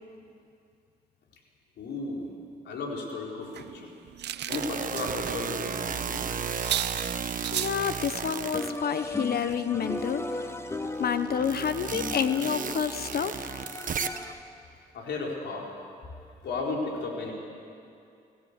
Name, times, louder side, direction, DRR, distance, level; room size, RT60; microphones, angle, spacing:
voice 1, 1.8-2.3 2.6-3.9 4.5-6.3 14.9-15.7 16.4-17.3, left 3 dB, 85° left, -1 dB, 4.2 m, -34 dB
sound 1, 3.5-5.4 5.8-5.9 6.2-6.3 6.5-7.8 8.6-8.7 9.1-9.2 9.5-9.6, right 11 dB, 75° right, 0.6 m, -35 dB
sound 2, 4.5-9.5 9.9-14.3, right 6 dB, 50° right, 1.2 m, -34 dB
voice 2, 7.5-10.5 11.0-13.5, left 7 dB, 65° left, 11 dB, 1.1 m, -29 dB
sound 3, 8.5-14.6, left 2 dB, 15° left, 1.2 m, -37 dB
25.5 x 16.5 x 8.3 m, 2.5 s
cardioid pair, 75°, 18 cm